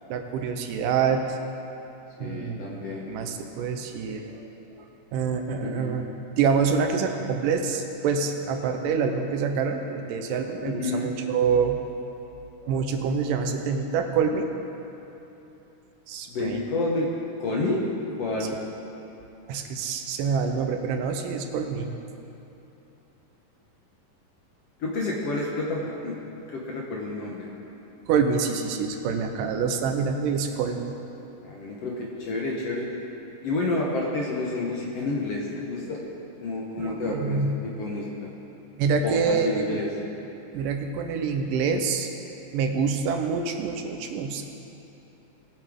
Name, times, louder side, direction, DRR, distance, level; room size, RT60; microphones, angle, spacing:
voice 1, 0.1-1.4 2.2-4.5 4.8-6.1 6.4-11.8 12.7-14.5 16.1-16.7 18.4-18.5 19.5-21.9 28.1-31.0 36.8-37.6 38.8-39.8 40.5-42.1 42.5-44.4, right 5 dB, 80° right, 5 dB, 2.4 m, -26 dB
voice 2, 2.2-3.1 5.6-6.0 10.6-11.1 16.3-17.1 17.4-17.8 18.2-18.6 24.8-26.2 26.5-27.5 31.4-32.9 33.4-36.0 36.4-38.1 39.0-39.9, left 2 dB, 60° left, -3 dB, 1.8 m, -29 dB
19.5 x 8.3 x 3.6 m, 3.0 s
omnidirectional pair, 3.8 m